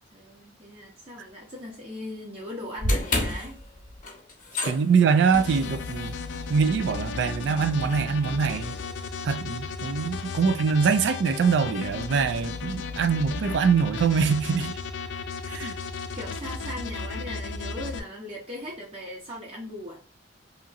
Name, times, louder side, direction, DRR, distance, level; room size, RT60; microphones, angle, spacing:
voice 1, 0.1-3.6 4.5-4.6 16.1-20.0, left 1 dB, 35° right, 0.7 m, -39 dB
sound 1, 2.8-9.1, left 1 dB, 45° left, 0.8 m, -33 dB
voice 2, 4.7-6.2 6.5-8.7 9.2-14.8 15.5-15.8, right 5 dB, 70° right, 0.3 m, -23 dB
sound 2, 5.3-18.0, left 5 dB, 80° left, 0.3 m, -35 dB
2.8 x 2.7 x 2.4 m
head